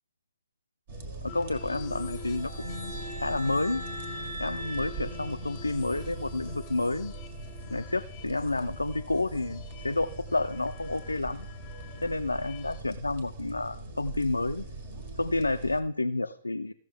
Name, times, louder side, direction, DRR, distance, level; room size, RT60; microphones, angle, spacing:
sound 1, 0.9-15.8, right 2 dB, 50° right, 1.7 m, -41 dB
voice 1, 1.2-2.9 3.2-3.8 4.4-7.1 7.7-11.5 12.0-14.7 15.2-16.7, left 2 dB, 80° left, 8 dB, 0.3 m, -30 dB
sound 2, 1.3-12.8, left 5 dB, 30° left, 0.7 m, -47 dB
sound 3, 1.9-5.9, right 1 dB, 85° right, 1.1 m, -42 dB
16.0 x 6.4 x 3.7 m, 0.69 s
figure-of-eight pair, 115°, 0 cm